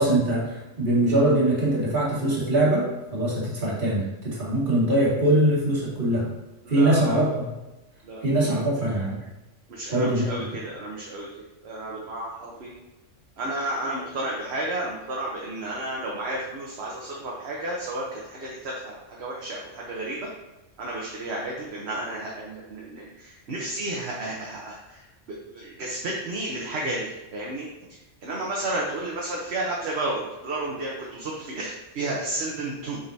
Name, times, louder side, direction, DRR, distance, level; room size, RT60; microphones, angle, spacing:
voice 1, 0.0-6.3 6.7-7.5 8.2-9.2 9.9-10.3, right 1 dB, 40° right, -7 dB, 2.4 m, -22 dB
voice 2, 6.6-7.3 8.0-8.2 9.7-11.3 11.6-12.7 13.4-20.3 20.8-25.0 25.5-27.7 28.2-33.0, right 2 dB, 60° right, -3 dB, 1.2 m, -32 dB
7.7 x 5.3 x 2.8 m, 1.1 s
omnidirectional pair, 1.3 m